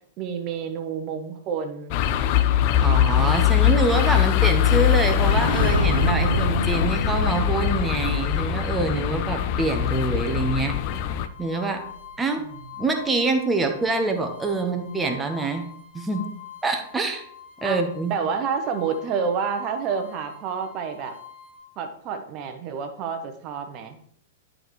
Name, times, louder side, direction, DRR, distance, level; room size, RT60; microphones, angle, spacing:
voice 1, 0.2-2.0 12.4-12.6 17.6-17.8 18.1-21.1 21.8-24.0, right 6 dB, 35° right, 6 dB, 1.0 m, -29 dB
sound 1, 1.9-11.3, left 12 dB, 45° left, 0.4 m, -22 dB
sound 2, 1.9-12.3 12.7-13.0, right 3 dB, 75° right, 0.8 m, -31 dB
voice 2, 2.8-10.8 11.4-11.8 12.2-12.4 12.8-15.7 15.9-16.3 16.6-17.2 17.6-18.2, right 3 dB, 10° right, 3 dB, 1.1 m, -25 dB
sound 3, 3.6-21.6, left 8 dB, 85° left, 2.8 m, -45 dB
11.0 x 5.0 x 3.2 m, 0.65 s
figure-of-eight pair, 100°, 0 cm